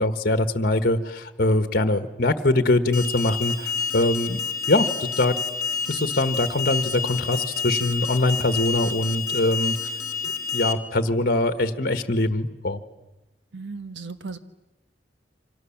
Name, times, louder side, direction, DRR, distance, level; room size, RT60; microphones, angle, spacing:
voice 1, 0.0-4.4 4.7-5.3 5.9-9.7 10.5-12.8, left 2 dB, 50° left, 10 dB, 1.4 m, -23 dB
Alarm, 2.9-10.7, left 5 dB, 20° left, 1.6 m, -29 dB
voice 2, 13.5-14.4, right 4 dB, 75° right, 10 dB, 1.4 m, -35 dB
28.5 x 25.5 x 7.3 m, 1.0 s
head